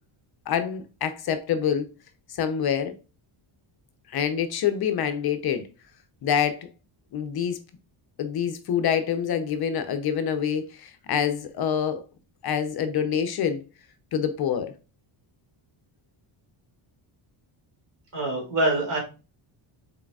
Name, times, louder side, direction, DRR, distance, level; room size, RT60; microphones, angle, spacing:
voice 1, 0.5-1.9 2.3-2.9 4.1-5.7 6.2-6.6 7.1-7.6 8.2-12.0 12.4-13.6 14.1-14.7, left 8 dB, 50° left, 0.5 m, -26 dB
voice 2, 18.1-19.0, right 1 dB, 55° right, 2.3 m, -24 dB
4.0 x 3.7 x 2.2 m
cardioid pair, 120°, 50 cm